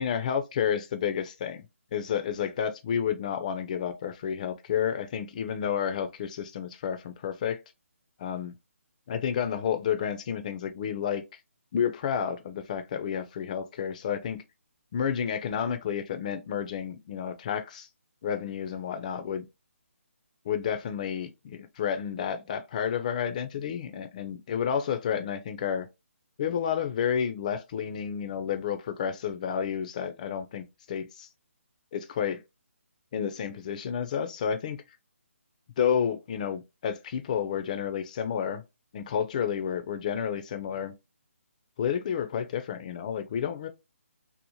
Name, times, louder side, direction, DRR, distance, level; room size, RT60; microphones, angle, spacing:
voice 1, 0.0-1.6 1.9-7.6 8.2-8.5 9.1-11.2 11.7-14.4 14.9-17.9 18.2-19.5 20.4-25.9 26.4-31.3 31.9-32.4 33.1-34.8 35.8-38.6 38.9-40.9 41.8-43.7, left 8 dB, 30° left, 0.4 m, -30 dB
2.7 x 2.0 x 2.9 m
figure-of-eight pair, 155°, 8 cm